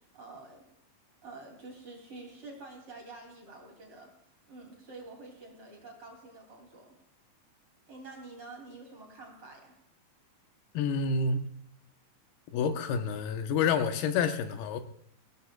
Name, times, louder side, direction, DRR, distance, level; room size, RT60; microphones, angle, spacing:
voice 1, 0.1-0.6 1.2-4.1 4.5-7.0 7.9-9.8, right 3 dB, 40° right, 1 dB, 3.3 m, -48 dB
voice 2, 10.7-11.5 12.5-14.8, left 5 dB, 85° left, 7 dB, 2.9 m, -28 dB
23.5 x 17.0 x 2.3 m, 0.71 s
omnidirectional pair, 4.3 m